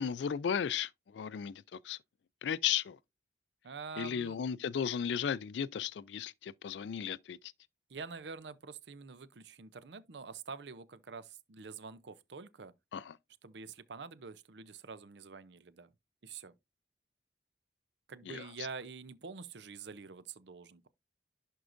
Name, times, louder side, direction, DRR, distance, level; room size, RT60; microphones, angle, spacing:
voice 1, 0.0-2.0 2.4-3.0 4.0-7.4 12.9-13.2 18.3-18.4, left 8 dB, 80° left, 0.4 m, -35 dB
voice 2, 3.6-4.4 7.9-12.7 13.4-15.9 16.2-16.5 18.1-20.9, right 5 dB, 75° right, 0.6 m, -46 dB
11.0 x 4.5 x 2.6 m
head